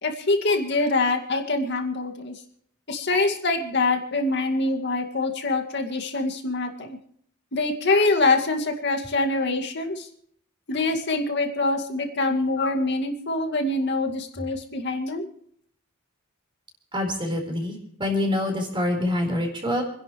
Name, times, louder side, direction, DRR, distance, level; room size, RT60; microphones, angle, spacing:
voice 1, 0.0-2.4 2.9-7.0 7.5-10.1 10.7-15.3, left 2 dB, 55° left, 4 dB, 2.2 m, -24 dB
voice 2, 16.9-19.8, left 1 dB, 25° right, 3 dB, 4.5 m, -26 dB
29.0 x 11.0 x 3.2 m, 0.65 s
head